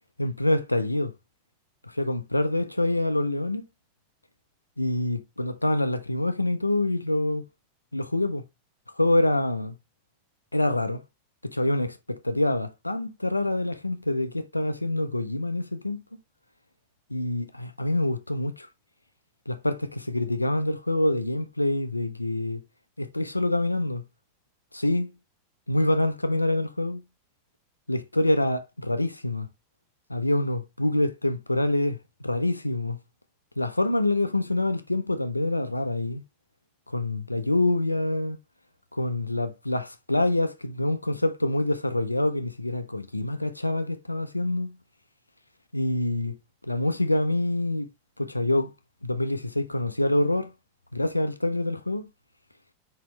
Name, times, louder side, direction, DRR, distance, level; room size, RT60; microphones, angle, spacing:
voice 1, 0.2-1.1 1.9-3.6 4.8-7.4 7.9-8.4 9.0-9.8 10.5-11.0 11.4-16.0 17.1-18.7 19.5-22.6 23.0-24.0 24.7-25.1 25.7-27.0 27.9-29.5 30.1-33.0 33.6-36.2 36.9-38.4 38.9-44.8 45.7-46.4 46.6-47.9 48.2-48.7 49.0-50.5 50.9-52.1, left 1 dB, 85° left, 0.4 m, -26 dB
4.3 x 4.2 x 2.9 m
figure-of-eight pair, 90°, 0 cm